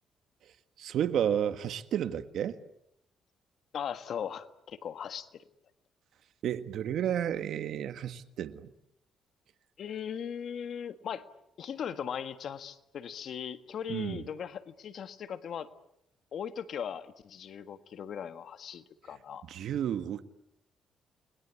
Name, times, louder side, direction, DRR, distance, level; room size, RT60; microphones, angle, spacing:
voice 1, 0.8-2.6 6.4-8.7 13.9-14.2 19.5-20.2, right 9 dB, 75° right, 1.6 m, -31 dB
voice 2, 3.7-5.4 9.8-11.3 11.6-15.7 16.3-19.4, left 8 dB, 65° left, 1.7 m, -39 dB
30.0 x 21.5 x 8.5 m
cardioid pair, 90°, 0 cm